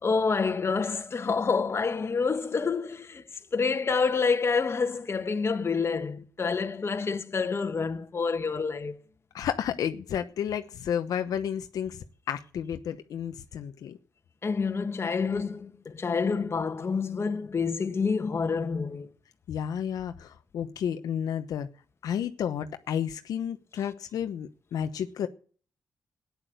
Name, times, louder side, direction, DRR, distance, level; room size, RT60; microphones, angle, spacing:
voice 1, 0.0-3.2 3.5-9.0 14.4-19.1, left 5 dB, 40° left, 1.7 m, -28 dB
voice 2, 9.3-14.0 19.5-21.7 22.0-25.3, left 9 dB, 80° left, 1.0 m, -32 dB
13.5 x 9.9 x 7.8 m
cardioid pair, 70°, 6 cm